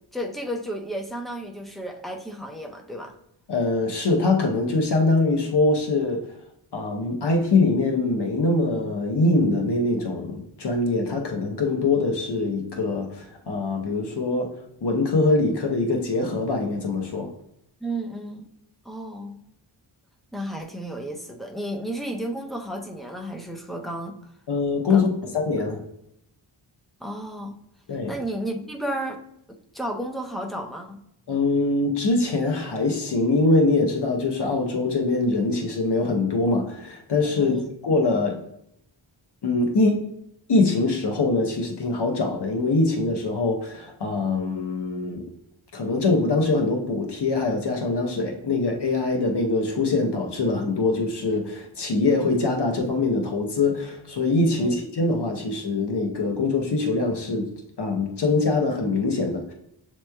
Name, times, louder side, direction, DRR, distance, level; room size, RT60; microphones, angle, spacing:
voice 1, 0.1-3.1 17.8-18.5 18.8-19.5 20.3-24.2 24.9-25.3 27.0-27.6 28.1-29.2 29.5-31.0 37.4-37.7 54.6-54.8, right 1 dB, ahead, 2 dB, 0.5 m, -33 dB
voice 2, 3.5-6.3 6.7-14.5 14.8-17.3 24.5-25.8 27.9-28.1 31.3-38.4 39.4-40.0 40.5-45.2 45.7-57.5 57.8-59.5, left 3 dB, 60° left, 2 dB, 0.7 m, -23 dB
7.2 x 3.0 x 2.2 m, 0.77 s
wide cardioid pair, 90°, 47 cm